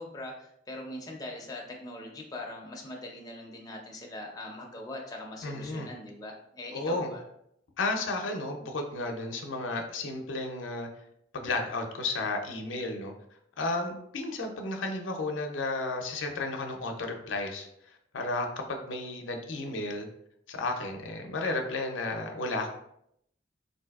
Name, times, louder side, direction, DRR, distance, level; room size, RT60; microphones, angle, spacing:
voice 1, 0.0-7.2, left 1 dB, 20° left, 0 dB, 0.4 m, -41 dB
voice 2, 5.4-5.9 6.7-7.1 7.8-10.9 11.3-13.1 13.6-17.7 18.1-20.1 20.5-22.7, left 2 dB, 85° left, 3 dB, 0.5 m, -33 dB
3.9 x 2.6 x 2.3 m, 0.74 s
head